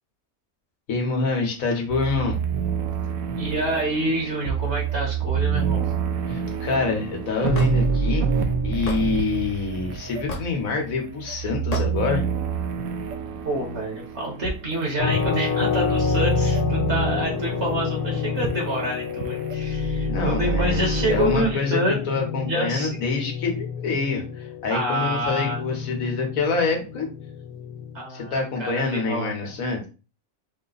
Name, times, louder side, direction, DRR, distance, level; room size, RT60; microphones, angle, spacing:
voice 1, 0.9-2.4 6.3-8.3 8.6-12.2 20.1-27.1 28.1-29.9, left 4 dB, 65° left, 2 dB, 1.5 m, -26 dB
sound 1, 1.9-21.5, right 6 dB, 75° right, 1.0 m, -28 dB
voice 2, 3.4-5.8 13.4-22.0 22.5-23.0 24.7-25.6 27.9-29.3, right 1 dB, 50° right, 0 dB, 1.5 m, -27 dB
Hammer / Wood, 7.5-7.7 8.9-9.0 10.3-10.6 11.7-11.9, left 1 dB, 35° left, 0.7 m, -30 dB
sound 2, 15.0-28.0, left 7 dB, 85° left, 1.4 m, -28 dB
4.7 x 2.2 x 3.9 m, 0.33 s
omnidirectional pair, 1.6 m